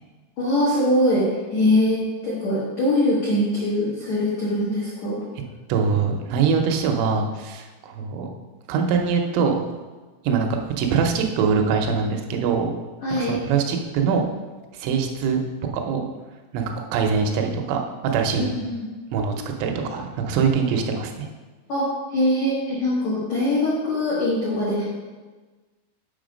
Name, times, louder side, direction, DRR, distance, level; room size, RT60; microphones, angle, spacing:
voice 1, 0.4-5.2 13.0-13.4 18.4-18.9 21.7-24.8, left 1 dB, 75° left, -8 dB, 1.6 m, -22 dB
voice 2, 5.7-8.3 8.7-9.7 10.2-12.7 13.2-14.3 14.7-15.4 15.7-16.1 16.5-16.6 16.9-18.5 19.1-19.3 19.6-21.3, right 5 dB, 80° right, 3 dB, 3.1 m, -23 dB
7.8 x 5.7 x 5.1 m, 1.3 s
omnidirectional pair, 6.0 m